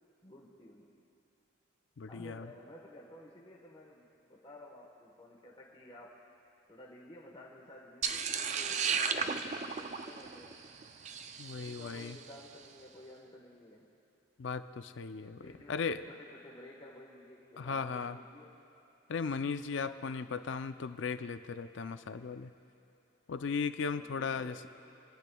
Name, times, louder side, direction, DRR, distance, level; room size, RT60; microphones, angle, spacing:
voice 1, 0.2-1.0 2.1-6.3 6.7-10.6 11.6-13.9 15.4-18.6 23.9-24.7, left 1 dB, 25° left, -4 dB, 1.2 m, -53 dB
voice 2, 2.0-2.5 11.4-12.2 14.4-15.4 15.7-16.0 17.6-18.2 19.1-22.5 23.3-24.7, left 5 dB, 60° left, 11 dB, 0.4 m, -36 dB
sound 1, 8.0-12.3, right 6 dB, 35° right, 0.4 m, -35 dB
29.5 x 10.5 x 2.3 m, 2.9 s
head